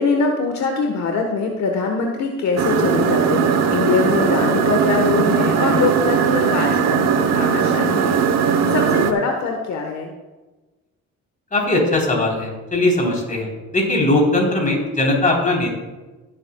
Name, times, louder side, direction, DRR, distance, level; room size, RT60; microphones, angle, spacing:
voice 1, 0.0-8.2 8.5-10.1, left 4 dB, 65° left, 2 dB, 1.2 m, -23 dB
sound 1, 2.6-9.1, right 7 dB, 60° right, 1.0 m, -19 dB
voice 2, 11.5-15.7, left 2 dB, 25° left, 0 dB, 3.6 m, -19 dB
16.5 x 8.3 x 2.3 m, 1.2 s
cardioid pair, 90°, 30 cm